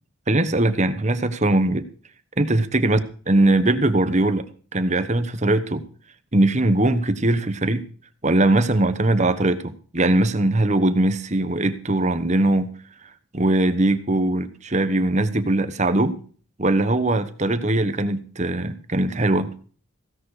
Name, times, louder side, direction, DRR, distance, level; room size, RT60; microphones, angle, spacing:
voice 1, 0.3-1.9 2.4-3.0 3.3-4.4 4.7-5.8 6.3-7.9 8.2-12.7 13.3-16.2 16.6-19.5, right 2 dB, 30° right, 11 dB, 1.1 m, -20 dB
16.0 x 11.0 x 4.9 m, 0.42 s
head